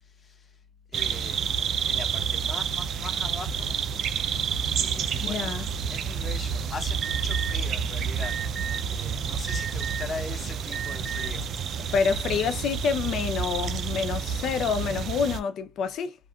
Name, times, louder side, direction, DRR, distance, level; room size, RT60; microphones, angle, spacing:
voice 1, 0.1-0.5 0.9-1.4 1.8-3.8 4.7-8.3 8.9-12.1 13.6-13.8, left 4 dB, 40° left, 0.9 m, -41 dB
sound 1, 0.9-15.4, right 7 dB, 70° right, 0.4 m, -29 dB
voice 2, 5.2-5.7 11.9-16.2, left 6 dB, 75° left, 0.6 m, -27 dB
Alarm, 7.0-7.5 8.2-8.8 9.5-10.1 10.7-11.3, right 8 dB, 20° right, 1.4 m, -34 dB
2.9 x 2.4 x 2.3 m
cardioid pair, 90°, 0 cm